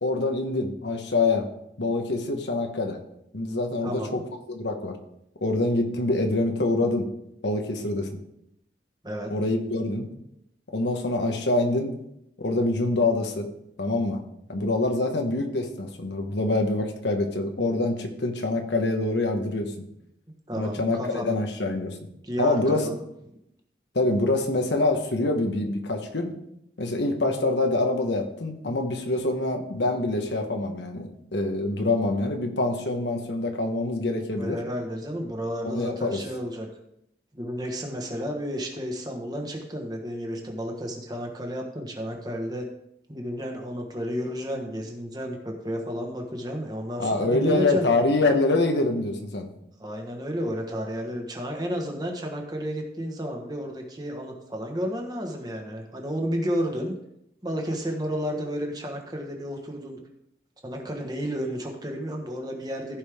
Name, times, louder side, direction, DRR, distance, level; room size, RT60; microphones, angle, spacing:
voice 1, 0.0-1.5 1.8-3.0 3.3-4.2 4.5-5.0 5.4-7.1 7.4-8.2 9.3-10.1 10.7-11.9 12.4-13.5 13.8-14.2 14.5-19.8 20.6-22.0 22.4-22.9 23.9-26.4 26.8-34.6 35.6-36.2 47.0-49.5, left 2 dB, 80° left, 4 dB, 1.2 m, -25 dB
voice 2, 3.8-4.2 9.0-9.3 20.5-21.4 22.2-23.0 34.4-36.7 37.3-42.6 43.1-47.9 49.8-57.0 57.4-60.0 60.6-63.0, equal, 20° right, 2 dB, 1.3 m, -32 dB
14.5 x 5.3 x 3.6 m, 0.80 s
head